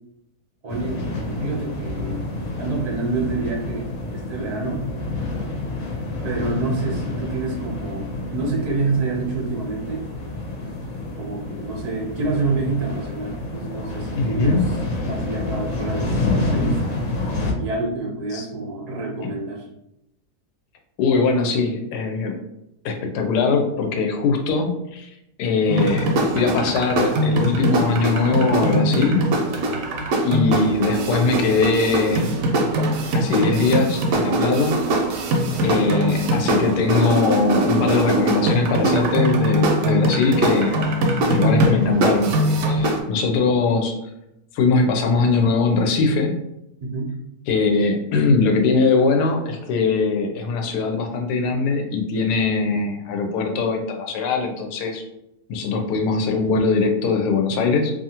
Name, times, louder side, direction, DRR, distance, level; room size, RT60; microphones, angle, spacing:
voice 1, 0.6-2.2 2.6-4.8 6.2-10.1 11.2-14.8 15.1-16.8 17.6-19.7 46.8-47.1, right 3 dB, 45° right, -2 dB, 0.5 m, -27 dB
sound 1, 0.7-17.5, left 2 dB, 65° left, 1.0 m, -28 dB
voice 2, 14.1-14.6 18.3-18.4 21.0-22.3 22.8-25.1 25.4-29.2 30.2-32.3 33.1-34.8 35.6-40.8 41.3-42.3 42.7-43.9 44.5-46.3 47.5-55.0 55.5-57.9, left 4 dB, 85° left, 3 dB, 1.2 m, -21 dB
sound 2, 25.7-43.0, right 1 dB, 70° right, 0.8 m, -21 dB
2.7 x 2.4 x 2.8 m, 0.85 s
omnidirectional pair, 1.7 m